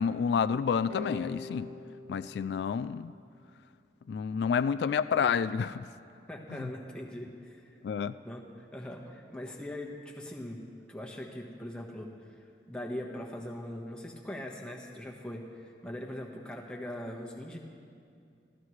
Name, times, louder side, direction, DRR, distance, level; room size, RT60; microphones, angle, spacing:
voice 1, 0.0-1.7 2.1-3.1 4.1-5.8 7.8-8.2, left 6 dB, 70° left, 14 dB, 0.3 m, -29 dB
sound 1, 0.9-3.7, left 3 dB, 80° right, 5.0 m, -44 dB
voice 2, 6.3-7.6 8.2-10.6 10.9-12.1 12.7-17.6, left 1 dB, 5° left, -1 dB, 1.3 m, -41 dB
24.5 x 15.5 x 3.2 m, 2.4 s
head